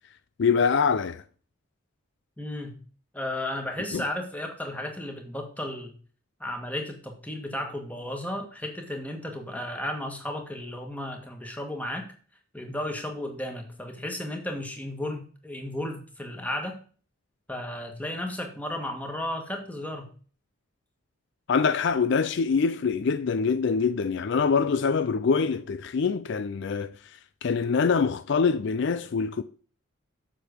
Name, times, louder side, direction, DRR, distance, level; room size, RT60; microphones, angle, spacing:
voice 1, 0.4-1.2 3.9-4.1 21.5-29.4, left 5 dB, 55° left, 0.4 m, -24 dB
voice 2, 2.4-2.8 3.1-5.9 6.4-12.0 12.5-16.8 17.5-20.1, left 1 dB, 5° left, 1.6 m, -34 dB
7.4 x 6.7 x 5.1 m
head